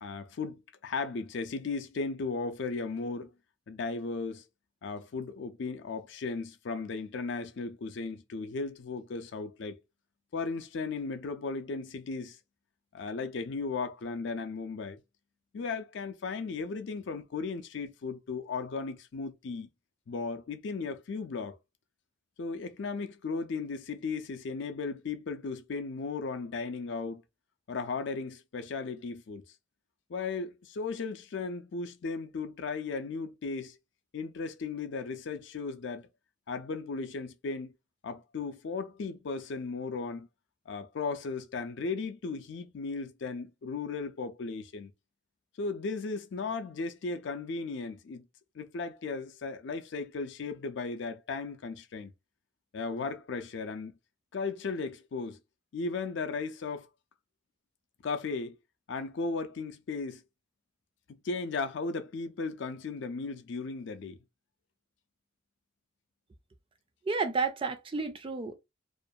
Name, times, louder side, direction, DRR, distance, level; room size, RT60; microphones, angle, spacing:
voice 1, 0.0-3.3 3.7-4.4 4.8-9.8 10.3-12.4 12.9-15.0 15.5-19.7 20.1-21.6 22.4-27.2 27.7-29.4 30.1-33.8 34.1-36.1 36.5-37.7 38.0-40.3 40.7-44.9 45.6-48.2 48.6-52.1 52.7-53.9 54.3-55.4 55.7-56.9 58.0-58.6 58.9-60.2 61.2-64.2, left 4 dB, 60° left, 0.4 m, -36 dB
voice 2, 67.1-68.5, right 4 dB, 25° right, 0.3 m, -31 dB
2.5 x 2.2 x 2.6 m
head